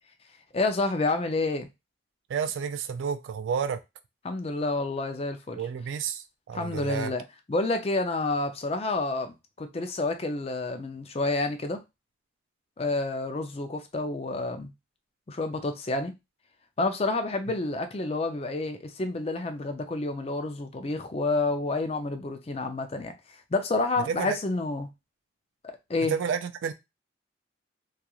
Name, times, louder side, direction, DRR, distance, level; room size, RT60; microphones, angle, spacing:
voice 1, 0.5-1.7 4.2-5.6 6.5-7.2 7.5-11.8 12.8-14.7 15.3-16.1 16.8-24.9 25.6-26.2, left 2 dB, 30° left, 0.4 m, -29 dB
voice 2, 2.3-3.8 5.6-7.1 24.1-24.4 26.1-26.7, right 7 dB, 80° right, 0.3 m, -30 dB
2.9 x 2.4 x 2.3 m
head